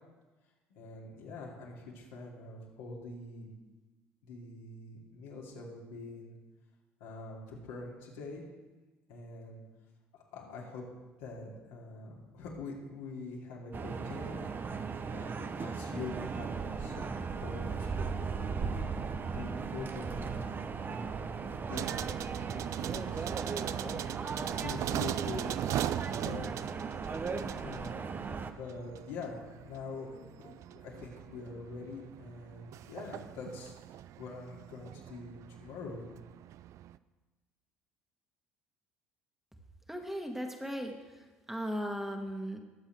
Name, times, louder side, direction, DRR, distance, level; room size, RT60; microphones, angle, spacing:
voice 1, 0.7-3.5 4.2-6.4 7.0-8.4 9.1-9.6 10.1-10.8 11.2-14.4 15.1-21.4 21.7-21.9 22.2-23.3 23.8-24.0 24.4-26.7 27.6-28.0 28.3-33.7 34.2-36.0, left 3 dB, 75° left, -3 dB, 2.6 m, -45 dB
sound 1, 13.7-28.5, right 5 dB, 30° right, 0.8 m, -37 dB
sound 2, 21.7-37.0, right 12 dB, 55° right, 0.4 m, -40 dB
voice 2, 39.9-42.6, equal, 5° right, 2 dB, 1.6 m, -37 dB
21.0 x 7.4 x 3.4 m, 1.2 s
hypercardioid pair, 60°, 6 cm